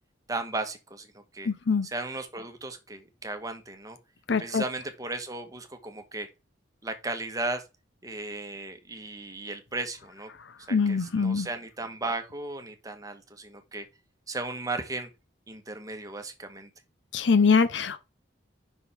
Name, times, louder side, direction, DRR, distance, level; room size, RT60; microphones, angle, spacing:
voice 1, 0.3-1.1 1.3-1.5 1.8-4.0 4.4-6.3 6.8-7.6 8.0-10.3 10.7-13.8 14.3-15.1 15.5-16.7, right 2 dB, 20° right, 1.2 m, -35 dB
voice 2, 1.5-1.9 4.3-4.6 10.7-11.5 17.1-18.0, left 5 dB, 70° left, 0.7 m, -23 dB
5.7 x 5.1 x 4.9 m
head